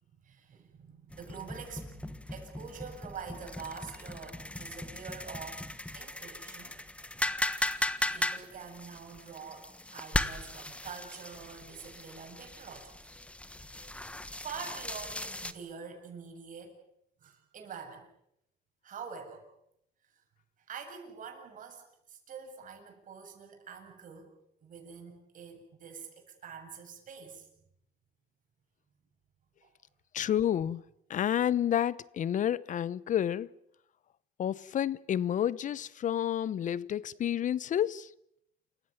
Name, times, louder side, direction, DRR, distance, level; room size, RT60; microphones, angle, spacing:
voice 1, 0.2-5.7 5.9-6.8 8.1-13.0 14.4-16.8 17.2-18.1 18.8-19.5 20.7-24.3 24.6-27.5 29.6-29.7, right 6 dB, 50° right, 7.8 m, -46 dB
sound 1, 1.1-15.5, left 1 dB, 5° left, 1.5 m, -37 dB
voice 2, 30.1-30.8 31.1-33.5 34.4-38.1, left 10 dB, 50° left, 0.9 m, -30 dB
29.0 x 16.0 x 9.4 m
cardioid pair, 110°, 17 cm